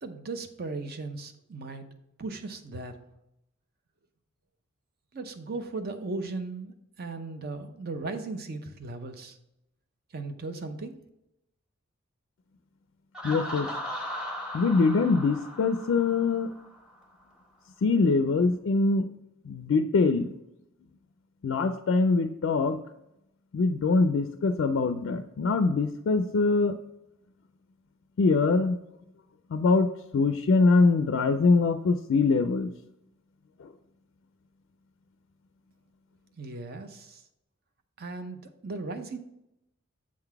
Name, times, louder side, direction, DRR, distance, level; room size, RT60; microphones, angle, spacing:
voice 1, 0.0-1.9 2.2-2.9 5.1-9.4 10.1-11.0 36.4-37.2 38.0-39.2, right 3 dB, 45° right, 8 dB, 0.6 m, -37 dB
Laughter, 13.1-16.8, equal, 5° right, 1.0 m, -37 dB
voice 2, 13.2-13.7 14.5-16.5 17.8-19.0 19.5-20.3 21.4-22.8 23.5-26.8 28.2-28.8 29.5-29.9 30.1-32.7, left 4 dB, 60° left, 8 dB, 0.3 m, -23 dB
7.4 x 3.8 x 4.6 m, 0.85 s
head